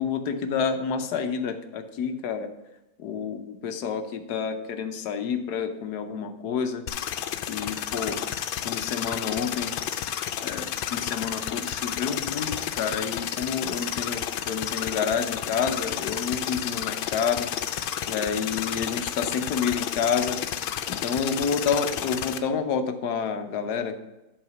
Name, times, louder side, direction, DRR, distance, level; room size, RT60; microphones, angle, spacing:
voice 1, 0.0-2.5 3.0-6.8 7.5-8.2 8.6-9.7 10.4-17.5 18.1-20.4 20.9-24.0, left 6 dB, 65° left, 8 dB, 1.1 m, -29 dB
sound 1, 6.9-22.4, left 10 dB, 85° left, 1.4 m, -31 dB
10.5 x 4.0 x 5.9 m, 1.0 s
omnidirectional pair, 2.2 m